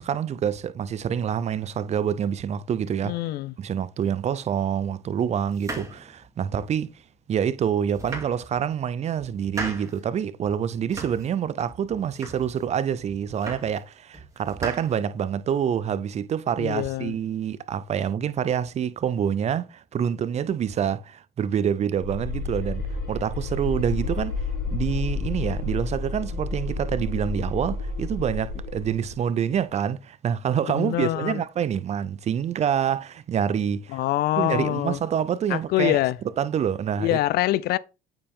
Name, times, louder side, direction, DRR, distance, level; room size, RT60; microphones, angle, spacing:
voice 1, 0.0-3.2 3.6-6.9 7.3-24.4 24.7-34.0 34.4-37.2, right 8 dB, 40° right, 0.5 m, -27 dB
voice 2, 3.0-3.5 16.6-17.1 30.7-31.4 33.9-35.0 35.5-36.2 37.0-37.8, left 15 dB, 70° left, 0.4 m, -24 dB
sound 1, 5.5-6.8 7.3-7.4 7.8-8.8 9.2-10.0 10.4-11.4 11.7-12.7 13.1-13.9 14.1-15.4, right 2 dB, 20° right, 2.6 m, -38 dB
sound 2, 22.0-29.2, left 3 dB, 85° left, 4.0 m, -30 dB
7.0 x 5.3 x 3.6 m
cardioid pair, 110°, 17 cm